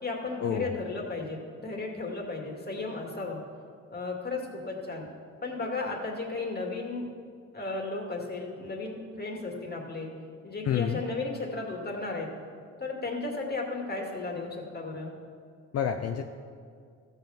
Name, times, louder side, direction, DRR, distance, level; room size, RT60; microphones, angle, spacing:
voice 1, 0.0-3.4 3.9-5.1 5.4-7.0 7.5-10.1 10.4-12.3 12.8-15.1, left 3 dB, 35° left, 0 dB, 2.4 m, -34 dB
voice 2, 10.7-11.0 15.7-16.2, left 8 dB, 55° left, 5 dB, 0.7 m, -28 dB
14.0 x 5.7 x 7.2 m, 2.2 s
cardioid pair, 90°, 30 cm